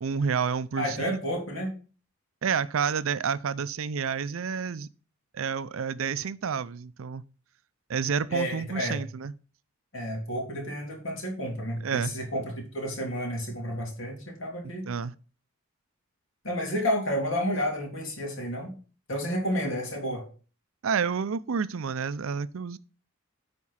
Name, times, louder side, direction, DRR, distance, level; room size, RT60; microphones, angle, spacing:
voice 1, 0.0-1.2 2.4-4.9 5.3-7.2 7.9-9.3 11.8-12.1 14.6-15.1 20.8-22.8, right 6 dB, 80° right, 0.5 m, -29 dB
voice 2, 0.8-1.7 8.3-9.0 9.9-14.9 16.4-18.7 19.1-20.3, equal, 70° left, 3.2 m, -31 dB
9.5 x 4.4 x 5.6 m
head